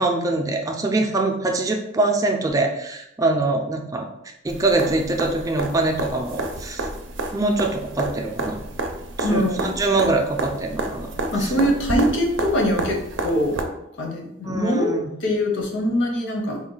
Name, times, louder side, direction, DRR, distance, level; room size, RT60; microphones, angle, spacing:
voice 1, 0.0-6.9 7.3-8.6 9.2-11.5 14.4-15.1, right 2 dB, 15° right, 2 dB, 0.4 m, -24 dB
sound 1, 4.5-13.6 15.6-15.7, right 2 dB, 75° right, 0.5 m, -30 dB
voice 2, 9.2-9.8 11.3-13.6 14.0-14.9 15.2-16.6, equal, 70° left, 1 dB, 0.8 m, -23 dB
3.9 x 2.2 x 3.8 m, 0.81 s
head